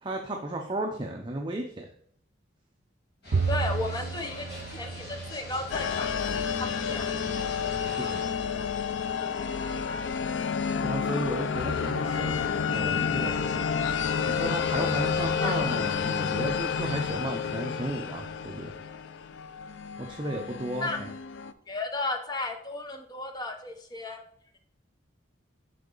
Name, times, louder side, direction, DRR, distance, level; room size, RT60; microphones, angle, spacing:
voice 1, 0.0-1.9 7.8-8.2 10.8-13.8 14.3-18.7 20.0-21.1, right 1 dB, 25° right, 2 dB, 0.6 m, -34 dB
sound 1, 3.2-8.2, equal, 60° left, 3.0 m, -43 dB
Bowed string instrument, 3.3-6.7, right 4 dB, 85° right, 0.5 m, -33 dB
voice 2, 3.5-7.1 15.4-15.6 20.8-21.0 21.7-24.2, left 2 dB, 20° left, 5 dB, 0.7 m, -34 dB
sound 2, 5.7-21.5, left 6 dB, 80° left, 0.4 m, -30 dB
6.7 x 4.6 x 3.9 m, 0.65 s
head